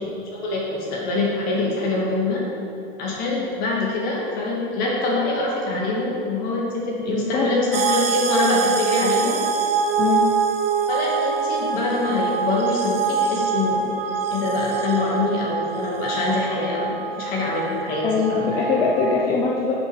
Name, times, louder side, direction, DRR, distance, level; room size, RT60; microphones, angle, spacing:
voice 1, 0.3-2.4 3.0-9.4 10.9-13.9 14.3-18.5, left 2 dB, 30° left, -3 dB, 2.4 m, -24 dB
voice 2, 7.1-7.5 10.0-10.3 18.0-19.7, left 5 dB, 10° left, -2 dB, 0.3 m, -22 dB
sound 1, 7.7-19.2, right 6 dB, 70° right, 1.0 m, -25 dB
10.5 x 6.8 x 5.0 m, 2.6 s
hypercardioid pair, 150°, 30 cm